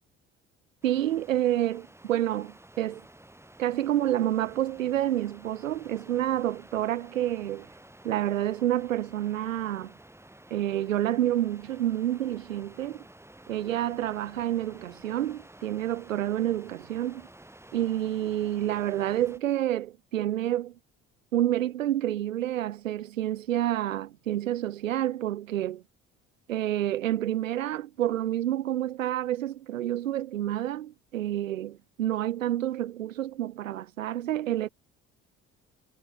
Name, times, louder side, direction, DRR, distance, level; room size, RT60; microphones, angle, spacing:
sound 1, 0.8-19.4, right 1 dB, 5° right, 3.4 m, -52 dB
voice 1, 0.8-3.0 3.6-7.7 8.0-9.9 10.5-13.0 13.5-17.3 17.7-20.7 21.3-25.8 26.5-34.7, right 12 dB, 85° right, 0.6 m, -28 dB
figure-of-eight pair, 55°, 38 cm